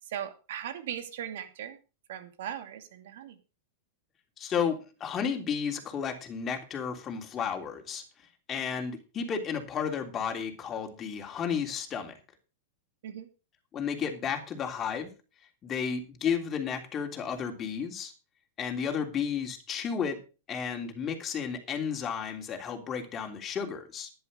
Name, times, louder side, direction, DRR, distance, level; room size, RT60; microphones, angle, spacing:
voice 1, 0.0-1.8 2.1-3.4 13.0-13.3, right 10 dB, 70° right, 8 dB, 2.6 m, -38 dB
voice 2, 4.4-8.0 8.5-12.1 13.7-15.1 15.6-18.1 18.6-20.2 20.5-24.1, left 7 dB, 25° left, 3 dB, 3.3 m, -32 dB
11.0 x 10.5 x 5.0 m, 0.33 s
hypercardioid pair, 130°, 0 cm